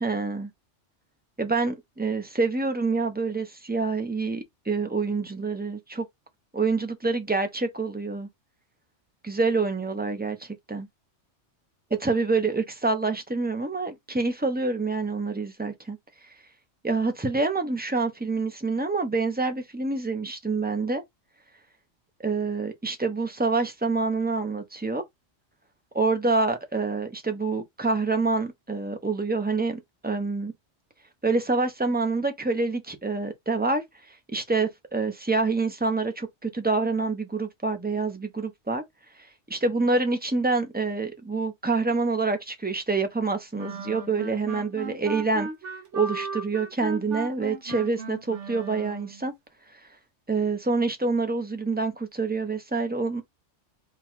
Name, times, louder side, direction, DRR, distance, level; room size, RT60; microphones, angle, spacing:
voice 1, 0.0-0.5 1.4-6.1 6.5-8.3 9.2-10.9 12.0-16.0 16.8-21.0 22.2-25.0 25.9-30.5 31.2-38.8 39.5-45.5 45.9-49.3 49.7-49.8 50.3-53.2, right 3 dB, 10° right, 0.5 m, -27 dB
sound 1, 43.6-49.2, right 4 dB, 75° right, 1.2 m, -36 dB
3.7 x 2.4 x 4.4 m
omnidirectional pair, 1.2 m